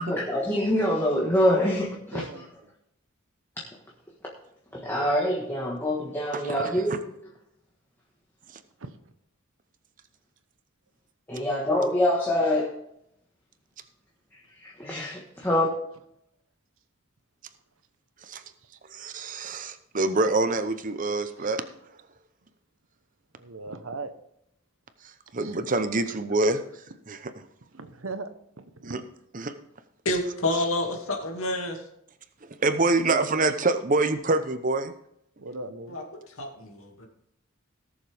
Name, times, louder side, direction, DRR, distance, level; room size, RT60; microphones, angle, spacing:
voice 1, 0.0-2.3 4.7-7.0 11.3-12.7 14.6-15.7, left 1 dB, 10° left, -3 dB, 1.4 m, -25 dB
voice 2, 2.1-2.5 4.9-5.1 8.8-8.9 18.7-18.8 21.4-21.5 23.4-24.1 25.4-25.5 27.7-28.3 28.8-29.0 33.1-33.3 35.4-36.0, right 3 dB, 75° right, 10 dB, 1.1 m, -38 dB
voice 3, 6.3-7.0 18.3-18.4 18.9-21.6 25.3-26.6 27.1-27.3 28.8-29.0 29.3-29.5 32.6-34.9, right 2 dB, 40° right, 10 dB, 0.8 m, -26 dB
voice 4, 30.0-31.8 35.9-37.1, left 1 dB, 85° left, 1 dB, 2.3 m, -29 dB
18.0 x 7.2 x 3.5 m, 0.76 s
head